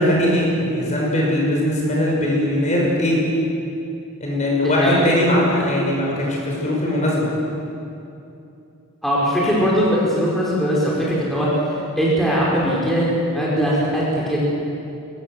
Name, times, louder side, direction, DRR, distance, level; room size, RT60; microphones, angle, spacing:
voice 1, 0.0-3.2 4.2-7.3, left 1 dB, 30° left, -3 dB, 6.0 m, -20 dB
voice 2, 4.6-5.0 9.0-11.5 12.0-14.4, equal, ahead, -7 dB, 5.1 m, -20 dB
24.0 x 21.5 x 7.9 m, 2.7 s
head